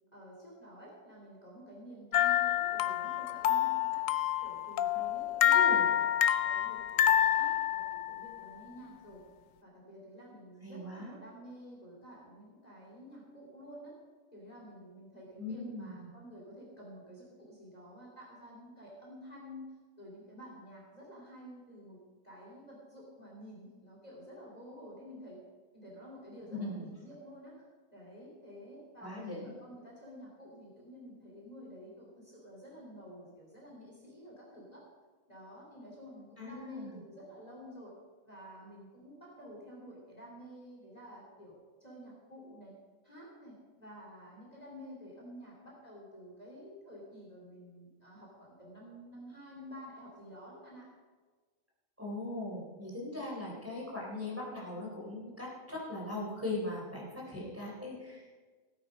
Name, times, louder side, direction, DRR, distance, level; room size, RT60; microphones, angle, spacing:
voice 1, 0.1-4.0 4.4-6.1 6.4-9.2 9.6-13.9 14.3-25.4 25.7-27.6 27.9-34.8 35.3-38.0 38.2-42.7 43.0-50.9 57.2-57.4, equal, 30° left, -4 dB, 3.0 m, -50 dB
sound 1, 2.1-8.4, left 11 dB, 70° left, 1.0 m, -28 dB
voice 2, 5.4-5.9 10.6-11.1 15.4-16.1 26.5-26.9 29.0-29.5 36.4-37.0 52.0-58.5, left 2 dB, 10° right, -5 dB, 3.6 m, -40 dB
16.5 x 9.2 x 5.1 m, 1.4 s
omnidirectional pair, 1.5 m